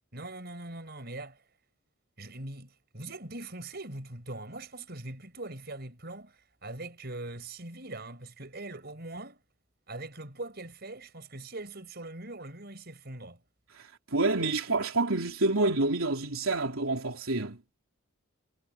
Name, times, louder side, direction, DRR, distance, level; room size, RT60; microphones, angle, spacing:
voice 1, 0.1-1.4 2.2-9.4 9.9-13.4, right 2 dB, 50° right, 5.6 m, -42 dB
voice 2, 13.7-17.6, right 2 dB, 90° right, 3.3 m, -28 dB
head